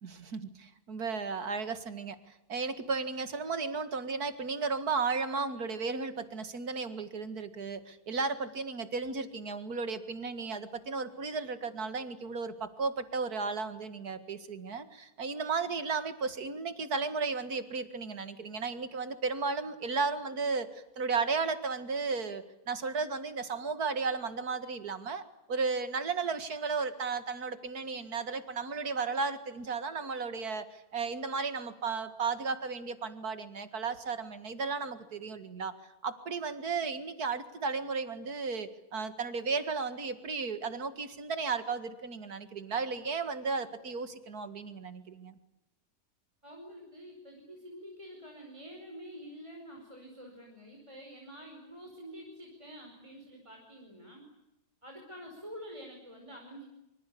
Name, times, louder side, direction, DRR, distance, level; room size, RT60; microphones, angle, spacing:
voice 1, 0.0-25.2 25.5-35.7 36.0-45.4, right 4 dB, 75° right, 11 dB, 2.5 m, -34 dB
voice 2, 46.4-54.2 54.8-56.7, equal, 20° right, 1 dB, 5.3 m, -48 dB
25.5 x 25.0 x 8.6 m, 0.92 s
omnidirectional pair, 1.6 m